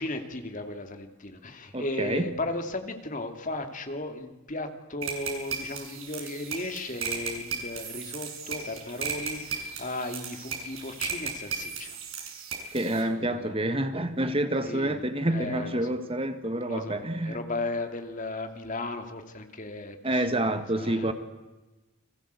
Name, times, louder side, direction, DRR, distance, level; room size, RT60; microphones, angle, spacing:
voice 1, 0.0-12.0 13.1-13.5 14.6-15.0 15.3-15.9 16.7-20.4 20.7-21.1, left 2 dB, 40° left, 6 dB, 2.6 m, -36 dB
voice 2, 1.7-2.3 12.7-17.4 20.0-21.1, right 1 dB, 25° right, 9 dB, 1.5 m, -28 dB
sound 1, 5.0-13.0, right 6 dB, 80° right, 7.1 m, -36 dB
30.0 x 22.0 x 8.2 m, 1.1 s
head